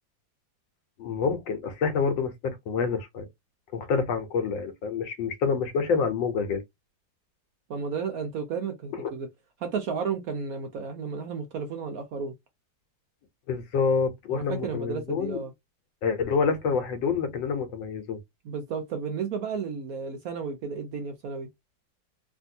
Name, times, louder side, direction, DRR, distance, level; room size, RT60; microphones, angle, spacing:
voice 1, 1.0-3.3 3.7-6.6 9.0-9.1 13.5-15.4 16.0-18.2, left 5 dB, 90° left, 1.5 m, -27 dB
voice 2, 7.7-9.3 9.6-12.3 14.3-15.5 18.4-21.5, right 5 dB, 65° right, 0.9 m, -33 dB
3.4 x 2.6 x 2.6 m
omnidirectional pair, 2.0 m